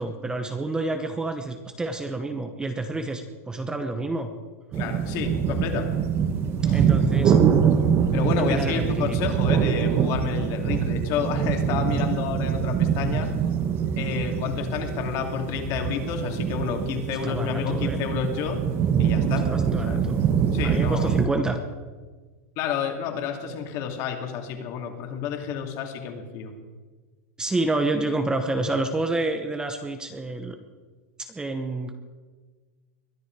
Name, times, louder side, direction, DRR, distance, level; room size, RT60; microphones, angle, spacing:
voice 1, 0.0-4.3 6.7-7.4 8.5-9.3 17.2-18.0 19.5-20.2 20.6-21.6 27.4-30.6 31.2-32.0, right 2 dB, 10° right, 7 dB, 1.0 m, -28 dB
voice 2, 4.7-6.1 6.6-6.9 8.1-13.3 14.0-18.6 19.0-19.5 19.8-20.0 20.5-21.2 22.6-26.5, left 7 dB, 45° left, 3 dB, 2.8 m, -30 dB
sound 1, 4.7-21.3, right 7 dB, 30° right, 1.3 m, -24 dB
22.5 x 12.5 x 4.8 m, 1.4 s
supercardioid pair, 150°, 8 cm